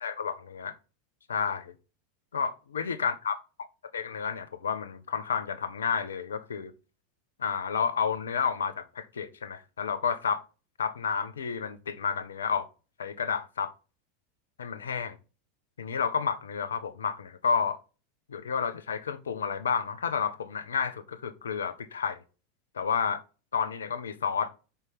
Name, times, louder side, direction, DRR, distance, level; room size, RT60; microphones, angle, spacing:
voice 1, 0.0-0.7 1.3-1.7 2.3-3.4 3.9-6.7 7.4-10.4 10.8-12.7 13.0-13.7 14.6-15.2 15.8-17.8 18.3-22.2 22.7-23.2 23.5-24.5, left 6 dB, 75° left, 0.7 m, -30 dB
5.4 x 4.7 x 5.4 m
figure-of-eight pair, 85°, 0 cm